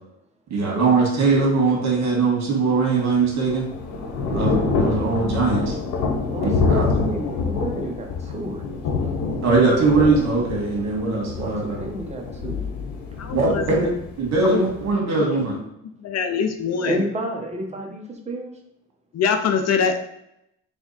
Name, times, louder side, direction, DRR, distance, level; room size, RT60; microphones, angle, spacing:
voice 1, 0.5-3.7 4.3-5.8 6.4-6.9 9.4-11.8 13.3-15.6, right 3 dB, 65° right, -1 dB, 1.7 m, -21 dB
Thunder / Rain, 3.0-14.9, left 4 dB, 90° left, 1.0 m, -26 dB
voice 2, 6.3-9.1 11.4-12.6 16.8-18.5, right 1 dB, 20° right, 1 dB, 1.0 m, -31 dB
voice 3, 13.2-13.6 14.4-14.6 15.2-15.3 16.0-17.0 19.1-20.0, left 6 dB, 60° left, 7 dB, 0.6 m, -23 dB
3.5 x 3.5 x 4.1 m, 0.79 s
cardioid pair, 90°, 30 cm